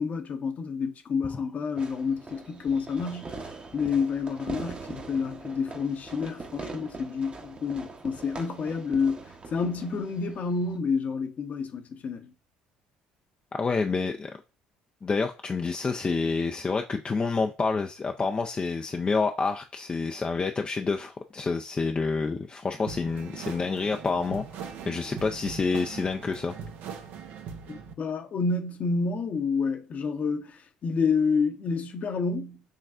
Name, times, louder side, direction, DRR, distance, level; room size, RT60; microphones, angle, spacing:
voice 1, 0.0-3.4 3.7-12.3 27.7-32.6, left 5 dB, 45° left, 0.9 m, -29 dB
Fireworks, 1.8-10.8, right 3 dB, 30° right, 1.0 m, -42 dB
voice 2, 13.5-14.3 15.0-26.5, left 4 dB, 30° left, 0.5 m, -28 dB
sound 1, 22.9-27.9, right 6 dB, 60° right, 0.7 m, -41 dB
6.5 x 3.2 x 2.5 m
hypercardioid pair, 60°, 4 cm